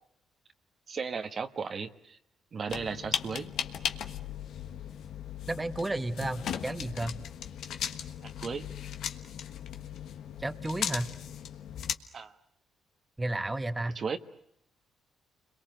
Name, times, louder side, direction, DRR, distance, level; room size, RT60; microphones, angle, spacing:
voice 1, 0.9-2.2 2.5-3.5 8.2-8.6 12.1-12.3 13.9-14.2, right 5 dB, 45° right, 7 dB, 1.3 m, -35 dB
sound 1, 2.7-12.0, left 9 dB, 75° left, 1.4 m, -37 dB
voice 2, 5.5-7.1 10.4-11.1 13.2-14.0, right 2 dB, 15° right, 9 dB, 1.3 m, -32 dB
29.5 x 22.5 x 7.9 m, 0.73 s
cardioid pair, 90°, 0 cm